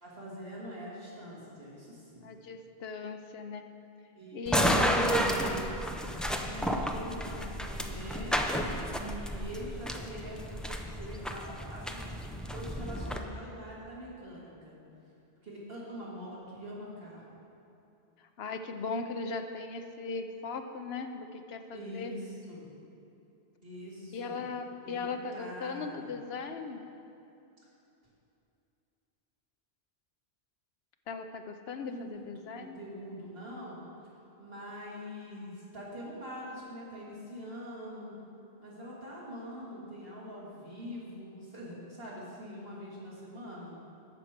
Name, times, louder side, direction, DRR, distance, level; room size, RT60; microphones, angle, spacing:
voice 1, 0.0-2.3 4.1-5.7 6.2-14.8 15.4-17.2 21.7-22.6 23.6-24.4 24.8-26.1 31.8-33.8 34.4-38.1 38.6-43.8, equal, 65° right, -6 dB, 2.6 m, -44 dB
voice 2, 2.2-3.7 4.3-5.2 18.4-22.1 24.1-26.8 31.1-32.8, left 4 dB, 70° left, 7 dB, 0.9 m, -38 dB
sound 1, 4.5-13.2, equal, ahead, 0.3 m, -32 dB
14.5 x 6.1 x 5.2 m, 2.7 s
omnidirectional pair, 1.1 m